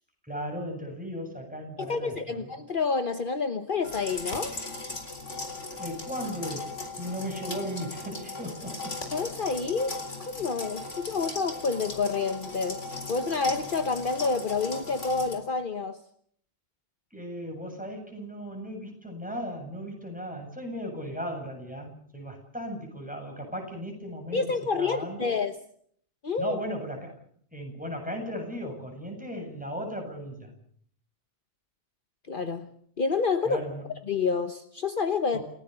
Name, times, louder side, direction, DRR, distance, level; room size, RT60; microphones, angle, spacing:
voice 1, 0.3-2.5 5.8-8.9 17.1-24.4 24.8-25.3 26.4-27.1 27.5-30.5 33.4-33.8 35.3-35.4, equal, 5° right, 7.9 m, -36 dB
voice 2, 1.8-4.6 9.1-12.8 13.1-16.0 24.3-25.6 26.2-26.6 32.3-32.7 33.0-33.6 34.1-35.4, left 4 dB, 50° left, 1.3 m, -28 dB
sound 1, 3.8-15.3, left 2 dB, 90° left, 4.3 m, -37 dB
29.0 x 17.5 x 6.9 m
omnidirectional pair, 1.2 m